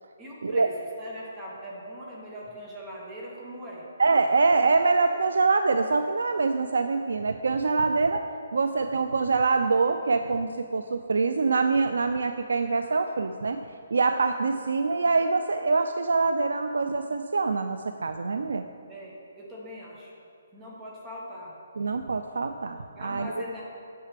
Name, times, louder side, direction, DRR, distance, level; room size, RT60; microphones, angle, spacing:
voice 1, 0.2-0.7 1.0-3.9 18.9-20.1 20.5-21.5 23.0-23.6, equal, 10° right, -4 dB, 0.7 m, -41 dB
voice 2, 4.0-8.2 8.5-13.6 13.9-18.6 21.8-23.4, right 4 dB, 90° right, 8 dB, 0.3 m, -25 dB
8.7 x 6.7 x 3.3 m, 2.6 s
hypercardioid pair, 180°, 0 cm